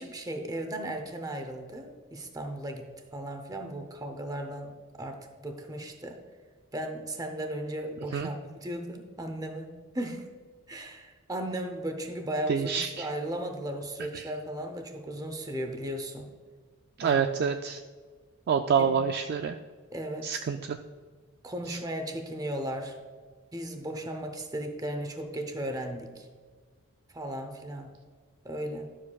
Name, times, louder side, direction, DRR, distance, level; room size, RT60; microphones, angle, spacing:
voice 1, 0.0-6.2 6.7-10.3 10.7-16.3 17.0-17.3 18.8-19.0 19.9-20.4 21.4-23.0 23.5-26.3 27.1-27.9 28.4-28.9, right 1 dB, 15° right, 5 dB, 0.8 m, -36 dB
voice 2, 12.5-13.1 14.1-14.3 17.0-17.8 18.5-19.6 20.2-20.8 21.7-21.8, right 6 dB, 50° right, 7 dB, 0.3 m, -27 dB
11.5 x 7.4 x 2.3 m, 1.5 s
head